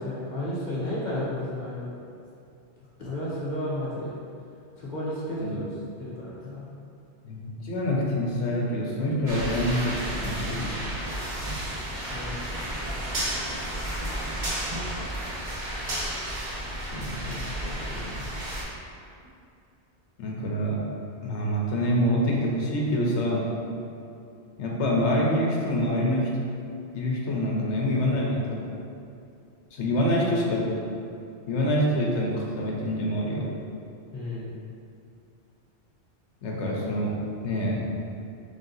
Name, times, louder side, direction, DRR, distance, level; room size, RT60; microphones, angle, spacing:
voice 1, 0.0-1.9 3.0-4.1 4.8-5.6 6.0-6.6 12.1-12.3 12.6-12.9 34.1-34.5, left 1 dB, 45° left, -8 dB, 1.0 m, -32 dB
voice 2, 7.2-10.7 16.9-18.2 20.2-20.8 21.2-23.5 24.6-26.3 26.9-28.7 29.7-30.7 31.5-33.4 36.4-37.1 37.4-37.8, equal, 80° left, -3 dB, 1.0 m, -26 dB
sound 1, 9.3-18.6, right 1 dB, 45° right, 0.8 m, -32 dB
3.5 x 2.7 x 3.9 m, 2.6 s
omnidirectional pair, 1.2 m